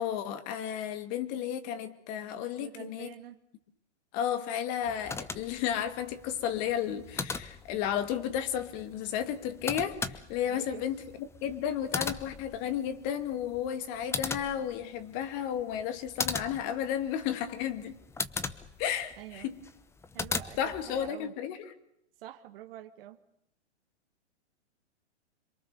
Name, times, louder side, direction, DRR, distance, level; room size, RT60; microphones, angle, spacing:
voice 1, 0.0-3.1 4.1-17.9 18.8-19.6 20.6-21.7, left 9 dB, 40° left, 9 dB, 2.4 m, -33 dB
voice 2, 2.6-3.4 10.5-10.8 19.2-19.5 20.1-21.3 22.2-23.2, right 13 dB, 50° right, 10 dB, 1.9 m, -46 dB
sound 1, 4.8-21.1, left 4 dB, 5° left, 0.9 m, -39 dB
26.5 x 23.5 x 7.0 m, 0.75 s
hypercardioid pair, 135°, 35 cm